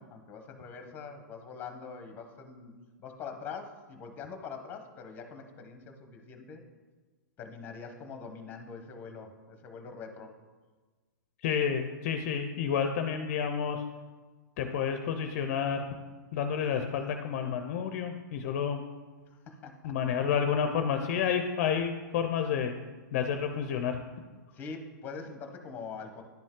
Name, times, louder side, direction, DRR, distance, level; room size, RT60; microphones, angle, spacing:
voice 1, 0.0-2.7 3.0-6.6 7.4-10.3 19.3-19.9 24.5-26.2, left 5 dB, 15° left, 5 dB, 0.9 m, -43 dB
voice 2, 11.4-13.8 14.6-15.9 16.3-18.8 19.8-22.8 23.1-24.0, left 7 dB, 40° left, 7 dB, 0.5 m, -30 dB
10.5 x 5.2 x 3.7 m, 1.3 s
hypercardioid pair, 160°, 11 cm